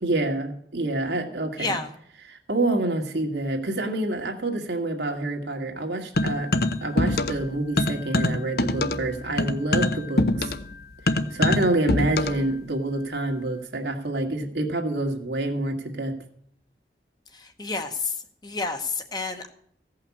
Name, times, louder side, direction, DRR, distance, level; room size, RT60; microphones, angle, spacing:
voice 1, 0.0-1.8 2.3-6.5 6.8-10.5 11.3-16.2, right 2 dB, 75° right, 3 dB, 1.9 m, -27 dB
voice 2, 1.6-1.9 17.3-18.2 18.4-19.5, left 3 dB, 25° left, 6 dB, 1.0 m, -30 dB
sound 1, 6.2-7.5 7.8-12.5, left 2 dB, 55° left, 0.8 m, -24 dB
15.5 x 5.8 x 8.3 m, 0.67 s
head